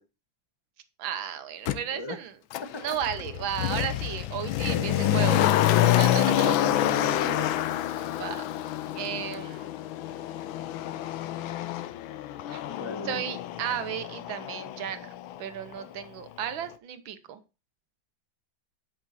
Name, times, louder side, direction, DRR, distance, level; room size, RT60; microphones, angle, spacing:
voice 1, 1.0-2.4 2.8-5.5 5.8-6.5 8.2-8.4 9.0-9.7 12.5-12.6 13.0-15.1 15.4-17.4, right 9 dB, 90° right, 10 dB, 1.8 m, -34 dB
Motor vehicle (road), 1.7-1.8 2.5-15.4 15.7-15.8, left 12 dB, 85° left, 1.5 m, -27 dB
voice 2, 1.9-2.2 4.7-5.0 6.3-7.5 12.7-13.2, left 3 dB, 15° left, 7 dB, 1.0 m, -35 dB
11.5 x 6.0 x 4.1 m, 0.30 s
omnidirectional pair, 2.1 m